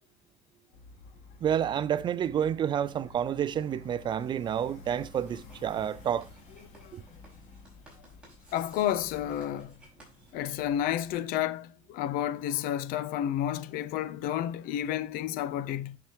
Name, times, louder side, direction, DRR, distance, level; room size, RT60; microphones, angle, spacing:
sound 1, 0.7-11.1, left 2 dB, 50° left, 2.9 m, -51 dB
voice 1, 1.4-6.3 6.9-7.0, right 9 dB, 30° right, 0.4 m, -29 dB
Writing, 5.2-11.0, right 1 dB, 5° right, 5.3 m, -57 dB
voice 2, 8.5-9.7 10.3-16.0, left 11 dB, 70° left, 0.7 m, -31 dB
10.5 x 6.1 x 3.0 m
cardioid pair, 165°, 15 cm